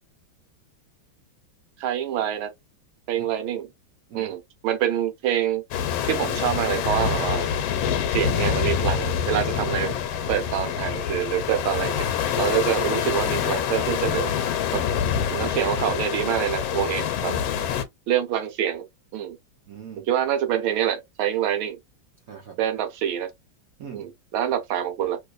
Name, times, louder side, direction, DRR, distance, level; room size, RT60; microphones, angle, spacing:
voice 1, 1.8-2.5 3.1-3.7 4.1-5.6 6.1-7.5 8.1-9.9 10.3-12.1 12.4-14.3 14.7-14.8 15.3-17.3 18.1-18.8 19.1-19.4 20.1-21.8 22.6-23.3 23.9-25.2, right 10 dB, 80° right, 1.6 m, -26 dB
sound 1, 5.7-17.8, left 8 dB, 80° left, 1.4 m, -26 dB
voice 2, 17.2-17.7 19.7-20.1 22.3-22.6 23.8-24.1, right 7 dB, 60° right, 1.0 m, -42 dB
3.2 x 3.0 x 2.3 m
omnidirectional pair, 2.2 m